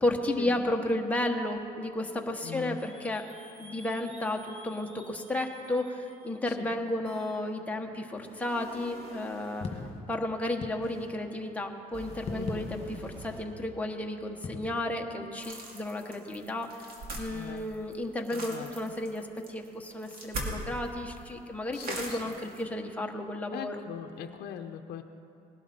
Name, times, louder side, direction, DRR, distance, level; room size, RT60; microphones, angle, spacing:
voice 1, 0.0-3.2 3.6-9.7 10.1-12.8 13.2-23.7, left 1 dB, 10° left, 2 dB, 1.1 m, -33 dB
voice 2, 2.4-2.8 6.4-6.7 12.3-12.7 17.3-17.7 18.3-18.7 21.7-22.3 23.5-25.0, left 9 dB, 75° left, 5 dB, 0.7 m, -41 dB
sound 1, 2.8-6.4 7.0-7.4 8.2-10.0 10.8-11.1 11.9-13.4, equal, 35° right, 2.6 m, -49 dB
sound 2, 9.6-10.0 10.6-11.3 12.1-13.1 14.4-14.8, left 4 dB, 35° left, 1.7 m, -38 dB
sound 3, 15.4-20.9 21.2-21.3 21.7-22.6, right 1 dB, 60° right, 2.3 m, -40 dB
19.0 x 11.5 x 4.2 m, 2.7 s
cardioid pair, 110°, 17 cm